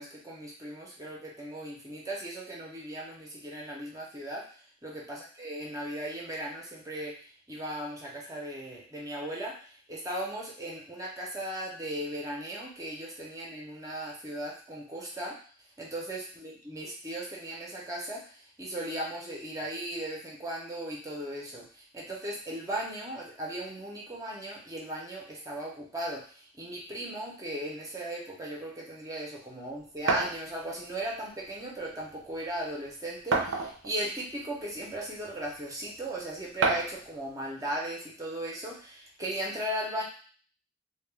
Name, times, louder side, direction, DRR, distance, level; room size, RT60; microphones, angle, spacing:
voice 1, 0.0-4.5 4.8-7.1 7.5-15.4 15.8-40.0, right 1 dB, 20° right, -2 dB, 0.5 m, -37 dB
sound 1, 30.1-30.4 31.5-31.6 32.0-32.1 33.3-34.0 34.8-34.9 36.6-37.0, right 4 dB, 85° right, 0.5 m, -27 dB
2.2 x 2.1 x 3.2 m, 0.42 s
head